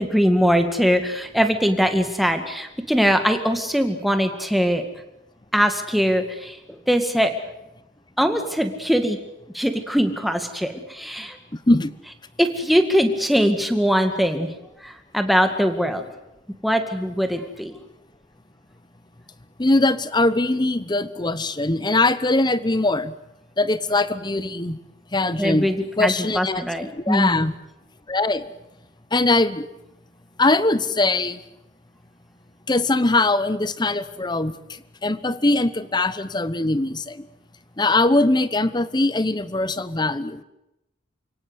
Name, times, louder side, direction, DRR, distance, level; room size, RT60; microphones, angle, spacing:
voice 1, 0.0-4.8 5.5-7.3 8.2-9.2 9.5-11.4 12.4-14.5 14.8-16.0 16.6-17.7 25.4-27.5, equal, ahead, 6 dB, 2.0 m, -21 dB
voice 2, 19.6-23.1 23.6-24.8 25.1-25.7 26.0-27.6 28.1-28.5 29.1-29.7 30.4-31.4 32.7-34.5 35.0-37.3 37.8-40.4, left 2 dB, 20° left, 15 dB, 0.9 m, -21 dB
28.5 x 18.0 x 8.2 m, 0.91 s
head